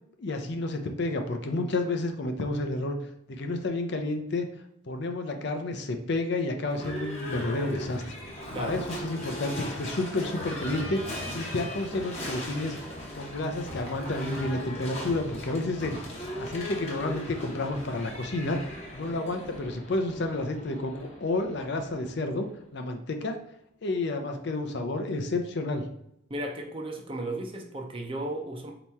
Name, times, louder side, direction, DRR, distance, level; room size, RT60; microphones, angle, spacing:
voice 1, 0.2-3.0 3.3-4.5 4.9-8.2 8.6-12.8 13.1-16.0 16.4-23.4 23.8-25.8, left 2 dB, 60° left, 5 dB, 0.5 m, -30 dB
Livestock farm animals working animals / Bell, 6.7-22.5, left 1 dB, 35° left, 0.9 m, -38 dB
voice 2, 26.3-28.7, right 1 dB, 25° right, 2 dB, 0.5 m, -34 dB
4.2 x 2.9 x 3.4 m, 0.79 s
head